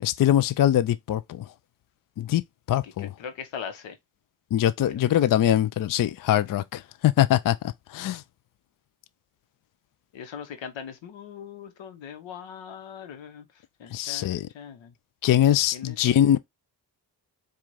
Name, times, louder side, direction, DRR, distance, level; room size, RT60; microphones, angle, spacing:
voice 1, 0.0-1.5 2.2-3.1 4.5-7.6 7.9-8.2 13.9-14.5 15.2-16.4, left 11 dB, 50° left, 0.5 m, -22 dB
voice 2, 2.7-4.0 4.9-5.2 10.1-14.9 15.7-16.1, left 7 dB, 85° left, 0.9 m, -41 dB
4.5 x 2.4 x 4.1 m
supercardioid pair, 50°, 45 cm